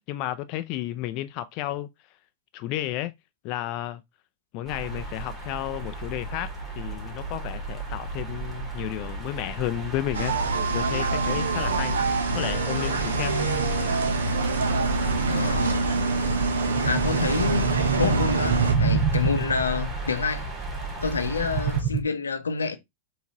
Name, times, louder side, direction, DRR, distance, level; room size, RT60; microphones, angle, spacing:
voice 1, 0.0-1.9 2.5-3.1 3.4-4.0 4.5-6.5 6.8-10.3 10.7-12.0 12.3-13.4, left 14 dB, 45° left, 0.3 m, -32 dB
sound 1, 4.6-21.8, right 3 dB, 10° right, 1.8 m, -35 dB
sound 2, 10.1-18.7, right 3 dB, 80° right, 0.8 m, -25 dB
sound 3, 13.3-22.0, right 5 dB, 50° right, 1.0 m, -29 dB
voice 2, 15.3-15.9 16.8-17.7 18.0-20.5 21.0-22.8, left 5 dB, 90° left, 0.6 m, -28 dB
4.4 x 2.7 x 2.8 m
hypercardioid pair, 105°, 0 cm